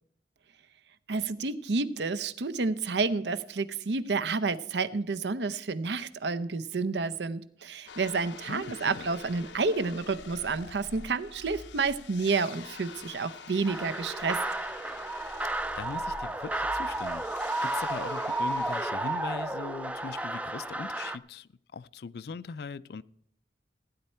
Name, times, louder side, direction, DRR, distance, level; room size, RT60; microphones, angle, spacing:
voice 1, 1.1-14.4, right 4 dB, 75° right, 0.6 m, -30 dB
sound 1, 7.9-18.9, left 5 dB, 90° left, 0.8 m, -46 dB
voice 2, 8.5-9.1 15.8-23.0, left 5 dB, 60° left, 0.4 m, -40 dB
sound 2, 13.7-21.2, right 2 dB, 10° right, 0.4 m, -32 dB
15.5 x 9.9 x 4.3 m
head